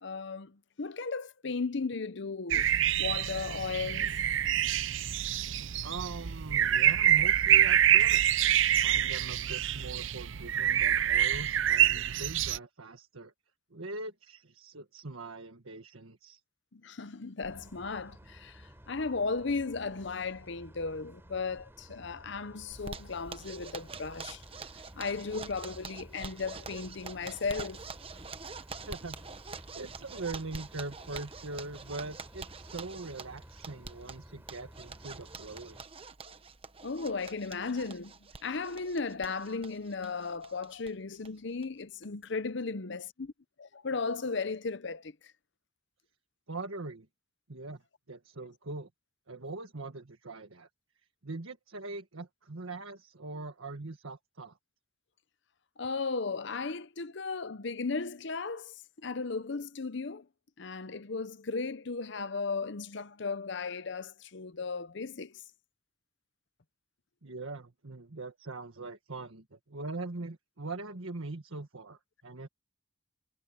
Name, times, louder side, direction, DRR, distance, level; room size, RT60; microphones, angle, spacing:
voice 1, 0.0-2.7 3.0-4.2 16.7-24.4 25.0-27.8 36.8-38.1 38.4-43.3 43.6-45.2 55.8-60.3 60.6-65.4, left 4 dB, 60° left, 0.8 m, -36 dB
sound 1, 2.5-12.6, right 10 dB, 70° right, 0.6 m, -26 dB
voice 2, 5.8-8.5 8.8-13.3 13.7-16.4 28.9-29.2 29.5-35.8 46.5-47.1 47.5-47.8 48.1-48.9 49.3-50.7 51.2-54.6 67.2-72.5, right 3 dB, 90° right, 1.6 m, -42 dB
sound 2, 17.4-35.8, equal, 10° right, 3.9 m, -54 dB
Zipper (clothing), 22.7-40.9 41.2-41.3 41.6-41.7 42.0-42.5, right 4 dB, 25° right, 1.1 m, -46 dB
head